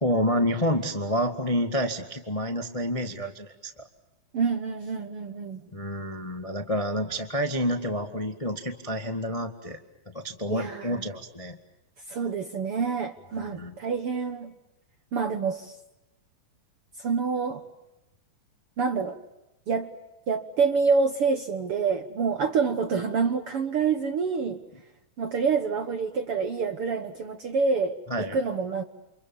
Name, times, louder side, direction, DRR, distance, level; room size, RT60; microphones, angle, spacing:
voice 1, 0.0-3.9 5.7-9.8 10.0-11.6 13.4-13.7 28.1-28.4, equal, 20° left, 6 dB, 0.9 m, -29 dB
voice 2, 4.3-5.6 10.5-11.0 12.1-14.5 15.1-15.8 17.0-17.6 18.8-19.2 19.7-19.9 20.3-24.6 25.2-28.8, right 5 dB, 55° right, 8 dB, 1.6 m, -27 dB
29.5 x 28.5 x 7.1 m, 0.94 s
omnidirectional pair, 4.1 m